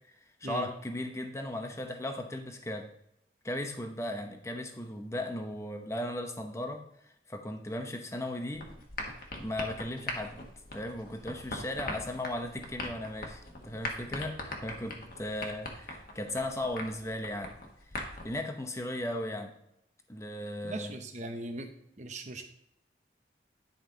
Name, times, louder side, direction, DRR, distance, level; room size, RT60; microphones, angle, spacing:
voice 1, 0.4-2.9 3.4-6.8 7.3-8.7 9.1-10.4 10.7-17.5 18.2-19.5 20.1-20.9, left 1 dB, 15° left, 5 dB, 0.8 m, -36 dB
sound 1, 8.5-18.4, left 2 dB, 50° left, 1.3 m, -41 dB
voice 2, 20.6-21.7 22.0-22.4, right 2 dB, 40° right, 6 dB, 0.9 m, -39 dB
10.5 x 5.4 x 3.9 m, 0.78 s
head